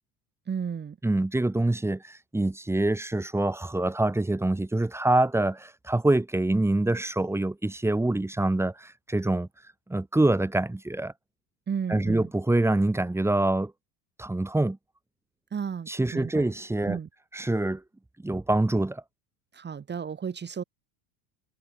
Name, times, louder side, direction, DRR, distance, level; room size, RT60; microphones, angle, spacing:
voice 1, 0.5-1.0 11.7-12.3 15.5-16.5 16.9-17.1 19.5-20.6, right 7 dB, 20° right, 4.4 m, -33 dB
voice 2, 1.0-9.5 9.9-11.1 11.9-13.7 14.2-14.8 15.9-17.0 17.3-17.8 18.2-19.0, right 2 dB, 5° right, 2.2 m, -25 dB
supercardioid pair, 140°, 49 cm